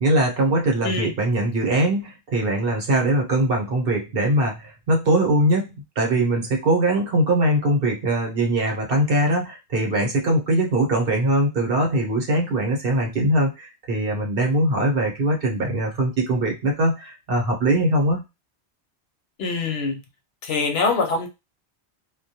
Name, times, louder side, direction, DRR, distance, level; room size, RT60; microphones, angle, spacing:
voice 1, 0.0-18.2, right 1 dB, 55° right, 1.0 m, -21 dB
voice 2, 19.4-20.0 20.4-21.3, left 4 dB, 70° left, 0.8 m, -24 dB
2.2 x 2.2 x 2.7 m
omnidirectional pair, 1.2 m